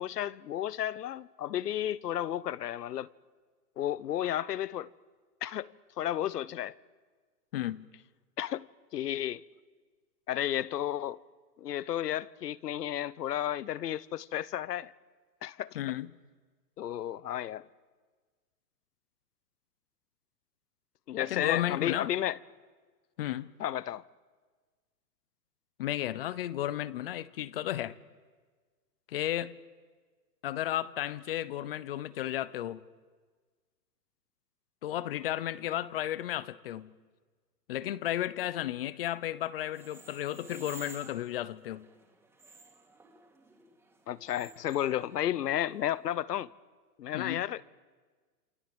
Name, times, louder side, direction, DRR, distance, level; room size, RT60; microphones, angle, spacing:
voice 1, 0.0-3.1 3.8-4.9 5.4-6.7 8.4-8.7 8.9-9.4 10.3-11.2 11.6-14.9 15.4-15.8 16.8-17.6 21.1-22.4 23.6-24.0 44.1-46.5 47.0-47.6, left 11 dB, 70° left, 1.0 m, -32 dB
voice 2, 7.5-7.9 15.7-16.1 21.2-22.1 23.2-23.5 25.8-28.0 29.1-29.6 30.4-32.8 34.8-36.9 37.7-41.9 47.1-47.5, left 13 dB, 35° left, 0.8 m, -33 dB
sound 1, 39.7-46.2, right 3 dB, 5° right, 2.8 m, -54 dB
28.0 x 25.0 x 7.9 m
hypercardioid pair, 155°, 48 cm